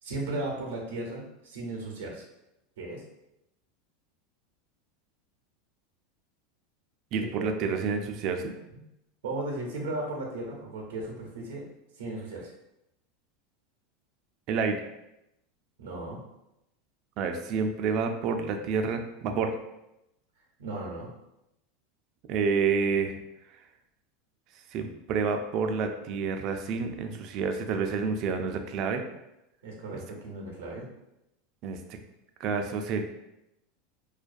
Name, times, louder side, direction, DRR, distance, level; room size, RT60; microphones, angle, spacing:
voice 1, 0.0-2.3 2.8-3.0 7.2-7.6 9.2-11.7 11.9-12.5 15.8-16.2 20.6-21.1 29.6-30.9, right 2 dB, 90° right, -1 dB, 0.6 m, -36 dB
voice 2, 7.1-8.5 14.5-14.8 17.2-19.5 22.3-23.1 24.7-29.0 31.6-32.0 32.4-33.0, right 5 dB, 50° right, 5 dB, 0.3 m, -29 dB
2.3 x 2.2 x 2.5 m, 0.88 s
supercardioid pair, 120°, 0 cm